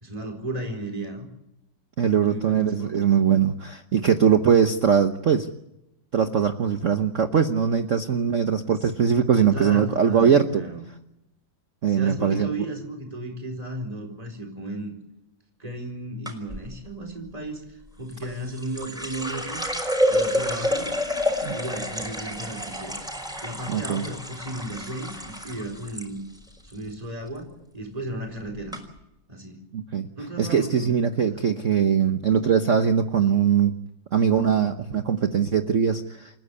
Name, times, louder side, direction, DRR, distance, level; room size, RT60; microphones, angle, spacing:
voice 1, 0.0-1.3 2.2-3.1 9.4-10.8 11.9-14.9 15.6-19.6 20.1-21.0 21.5-22.9 23.4-26.2 26.6-28.8 29.3-29.6 30.1-31.4, right 1 dB, 20° right, 2 dB, 4.6 m, -35 dB
voice 2, 2.0-5.5 6.1-10.7 11.8-12.5 21.4-21.6 23.7-24.0 29.7-30.1 30.4-33.7 34.1-36.4, right 7 dB, 50° right, 7 dB, 1.2 m, -21 dB
sound 1, 16.3-16.6 18.1-26.1 26.4-26.9 27.3-27.6 28.3-28.4 28.7-28.8, equal, ahead, 5.1 m, -29 dB
29.0 x 15.0 x 8.4 m, 0.85 s
omnidirectional pair, 2.1 m